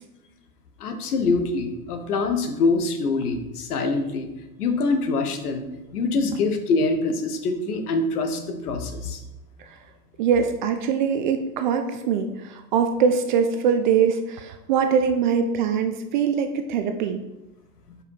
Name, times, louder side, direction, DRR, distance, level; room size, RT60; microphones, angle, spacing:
voice 1, 0.8-4.3 4.6-5.7 5.9-9.2, left 3 dB, 70° left, 6 dB, 1.2 m, -24 dB
voice 2, 10.2-17.2, right 6 dB, 35° right, 7 dB, 0.4 m, -22 dB
5.1 x 4.4 x 4.7 m, 0.98 s
hypercardioid pair, 110°, 47 cm